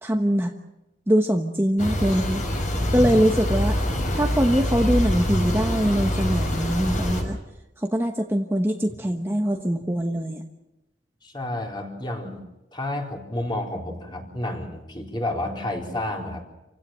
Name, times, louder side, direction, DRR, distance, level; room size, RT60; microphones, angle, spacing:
voice 1, 0.0-0.5 1.1-2.4 2.9-3.8 4.1-7.4 7.8-10.4, equal, 15° right, 3 dB, 1.1 m, -23 dB
sound 1, 1.8-7.2, left 1 dB, 45° left, 6.2 m, -25 dB
voice 2, 11.2-12.4 12.7-16.4, left 1 dB, 25° left, 0 dB, 4.3 m, -30 dB
28.0 x 17.0 x 7.7 m, 0.97 s
head